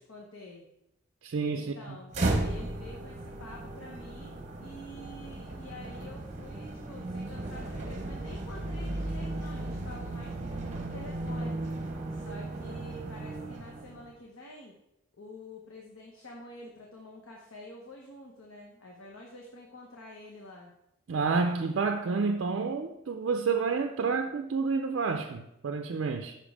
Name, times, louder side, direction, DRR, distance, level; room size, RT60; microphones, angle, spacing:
voice 1, 0.1-0.7 1.5-11.6 12.1-14.7 15.1-20.7, left 1 dB, 75° left, 1.0 m, -48 dB
voice 2, 1.2-1.7 21.1-26.4, right 4 dB, 60° right, 0.4 m, -29 dB
sound 1, 2.1-14.1, right 2 dB, 35° right, 0.8 m, -35 dB
5.9 x 5.2 x 4.9 m
head